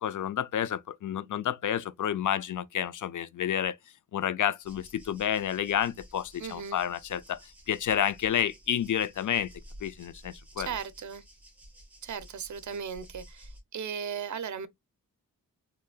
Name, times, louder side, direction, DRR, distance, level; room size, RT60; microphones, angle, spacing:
voice 1, 0.0-3.8 4.1-7.4 7.7-9.5 9.8-10.7, left 10 dB, 60° left, 0.5 m, -30 dB
sound 1, 4.6-13.6, equal, 5° right, 1.8 m, -52 dB
voice 2, 6.4-6.8 10.6-11.2 12.0-14.7, right 7 dB, 55° right, 0.6 m, -37 dB
3.8 x 3.2 x 2.3 m
wide cardioid pair, 85°, 35 cm